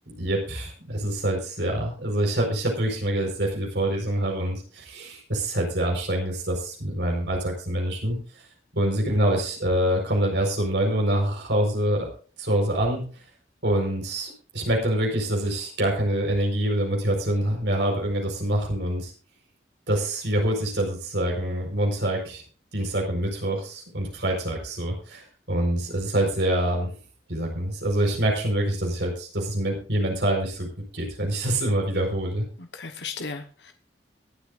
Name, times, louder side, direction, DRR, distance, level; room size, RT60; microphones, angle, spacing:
voice 1, 0.1-8.4 8.7-12.1 12.4-13.0 13.6-19.1 19.9-22.4 22.7-26.9 27.3-30.7 30.9-32.4, right 1 dB, 75° right, 1 dB, 4.6 m, -25 dB
voice 2, 32.6-33.7, left 4 dB, 80° left, 6 dB, 1.2 m, -36 dB
22.5 x 8.4 x 2.5 m, 0.40 s
head